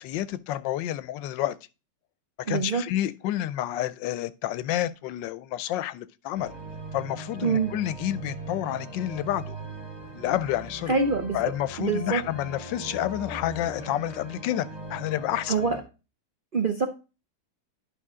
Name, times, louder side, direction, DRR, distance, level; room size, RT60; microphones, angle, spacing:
voice 1, 0.0-1.6 2.5-6.5 6.9-9.6 10.1-10.9 11.3-15.5, left 13 dB, 85° left, 1.3 m, -29 dB
voice 2, 2.5-2.8 7.4-7.7 10.9-11.4 11.8-12.2 15.5-15.8 16.5-16.9, right 4 dB, 45° right, 0.6 m, -25 dB
sound 1, 6.3-15.8, right 2 dB, 25° right, 1.7 m, -40 dB
11.0 x 5.3 x 3.6 m
omnidirectional pair, 2.0 m